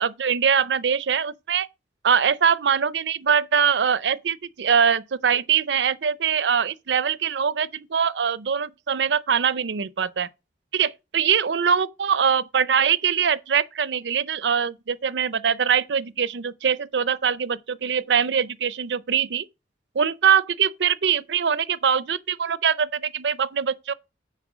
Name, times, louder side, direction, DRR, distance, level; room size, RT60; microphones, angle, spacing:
voice 1, 0.0-1.7 2.0-10.3 10.7-19.5 19.9-23.9, right 7 dB, 85° right, 0.5 m, -23 dB
9.8 x 4.4 x 6.1 m
head